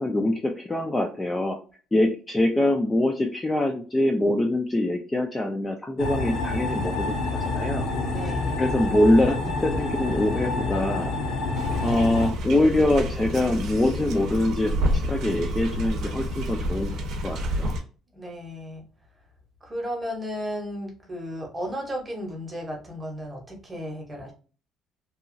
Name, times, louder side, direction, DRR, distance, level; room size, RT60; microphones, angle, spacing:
voice 1, 0.0-1.6 1.9-7.2 7.5-7.9 8.6-11.1 11.8-14.7 15.0-16.9 17.2-17.7, left 1 dB, 10° left, 1 dB, 0.3 m, -24 dB
sound 1, 6.0-12.3, left 2 dB, 60° left, 0.6 m, -28 dB
voice 2, 8.1-8.7 18.1-18.8 19.6-24.3, equal, 15° right, 0 dB, 0.8 m, -34 dB
sound 2, 11.6-17.8, equal, 65° right, 0.6 m, -29 dB
2.8 x 2.3 x 2.5 m, 0.38 s
cardioid pair, 160°, 0 cm